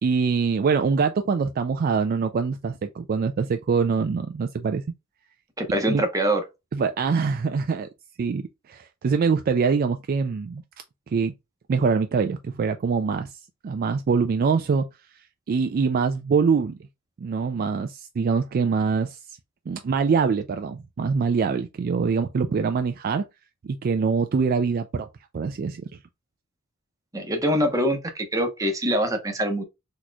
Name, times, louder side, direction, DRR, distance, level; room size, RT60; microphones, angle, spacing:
voice 1, 0.0-4.8 5.9-6.0 6.7-7.9 8.2-10.6 11.1-11.3 11.7-14.9 15.5-16.8 17.2-19.4 19.7-23.2 23.6-25.1 25.3-25.8, right 5 dB, 45° right, 0.3 m, -24 dB
voice 2, 5.6-6.4 27.1-29.6, equal, 15° right, 0.9 m, -24 dB
4.1 x 3.0 x 2.2 m
head